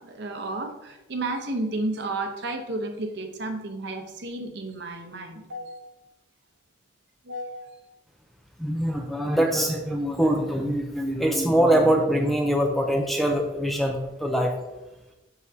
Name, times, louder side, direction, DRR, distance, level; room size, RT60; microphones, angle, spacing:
voice 1, 0.0-5.8 7.2-7.9, right 2 dB, 60° right, 5 dB, 0.8 m, -32 dB
voice 2, 8.6-14.5, right 1 dB, ahead, 2 dB, 0.5 m, -23 dB
7.4 x 6.1 x 2.7 m, 1.0 s
head